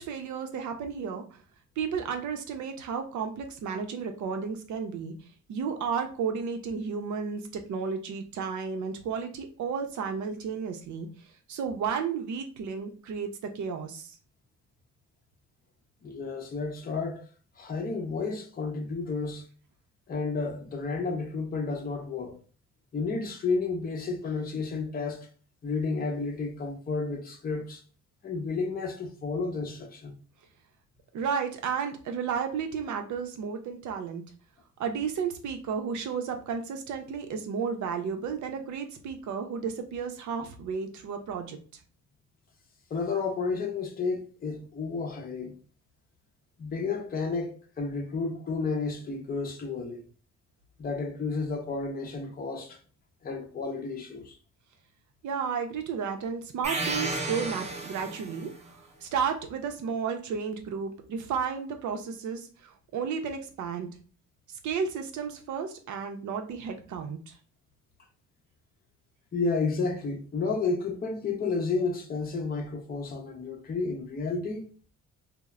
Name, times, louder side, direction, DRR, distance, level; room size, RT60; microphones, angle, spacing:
voice 1, 0.0-1.4 1.8-5.1 5.5-11.1 11.5-14.1 31.1-34.2 34.8-41.6 55.2-63.9 64.6-67.4, right 6 dB, 70° right, 0.6 m, -33 dB
voice 2, 16.0-17.2 17.6-19.4 20.1-22.4 22.9-25.3 25.6-27.8 28.2-30.1 42.9-45.6 46.6-50.0 50.8-52.8 53.2-54.4 69.3-74.9, left 4 dB, 30° left, 0.6 m, -31 dB
sound 1, 56.6-58.5, right 2 dB, 20° right, 0.6 m, -32 dB
3.0 x 2.0 x 2.3 m
cardioid pair, 90°, 30 cm